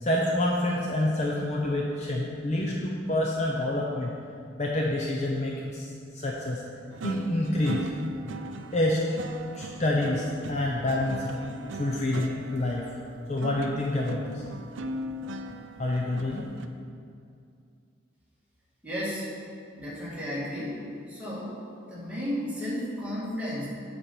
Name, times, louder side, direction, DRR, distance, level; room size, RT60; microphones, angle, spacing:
voice 1, 0.0-4.1 4.5-6.6 7.0-7.9 8.7-9.1 9.5-11.4 11.8-12.8 13.3-14.4 15.8-16.5, left 1 dB, 35° left, -2 dB, 0.6 m, -27 dB
IN thru the window, 6.9-16.7, right 2 dB, 65° right, 0.4 m, -39 dB
voice 2, 18.8-19.3 19.8-20.8 21.1-21.6 21.9-23.7, equal, 5° right, -9 dB, 2.0 m, -33 dB
7.5 x 4.3 x 6.9 m, 2.4 s
head